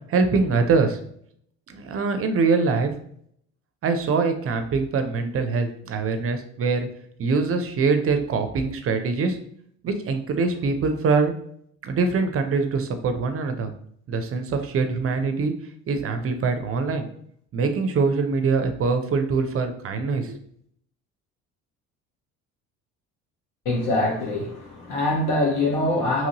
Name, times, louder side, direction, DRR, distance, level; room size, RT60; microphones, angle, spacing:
voice 1, 0.1-1.0 1.7-2.9 3.8-6.9 7.2-9.4 9.8-11.3 11.8-13.7 14.1-15.5 15.9-17.1 17.5-20.4, right 4 dB, 40° right, 7 dB, 0.6 m, -23 dB
voice 2, 23.6-26.3, left 2 dB, 65° left, -2 dB, 1.3 m, -23 dB
3.0 x 2.5 x 2.9 m, 0.65 s
supercardioid pair, 70°, 34 cm